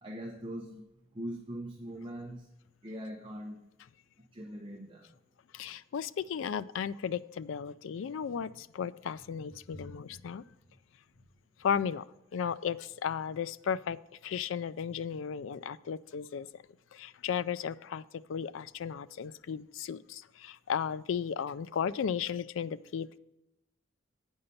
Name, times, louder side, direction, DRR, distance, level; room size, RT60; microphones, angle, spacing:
voice 1, 0.0-0.8 1.1-2.5 2.8-3.6 4.3-5.1 9.7-9.9, equal, 25° right, 2 dB, 0.8 m, -41 dB
voice 2, 5.5-10.4 11.6-12.1 12.3-14.0 14.2-16.6 16.9-18.0 18.3-23.2, left 7 dB, 75° left, 15 dB, 0.3 m, -35 dB
8.8 x 5.4 x 6.7 m, 0.91 s
head